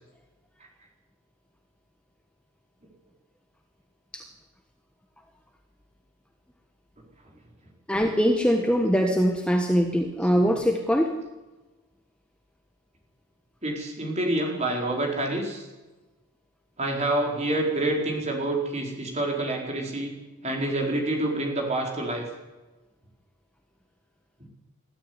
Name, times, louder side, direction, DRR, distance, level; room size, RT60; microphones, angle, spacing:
voice 1, 7.9-11.1, equal, 5° left, 3 dB, 1.3 m, -22 dB
voice 2, 13.6-15.7 16.8-20.1 20.4-22.2, right 1 dB, 30° right, 0 dB, 4.7 m, -27 dB
21.0 x 13.5 x 9.7 m, 1.1 s
head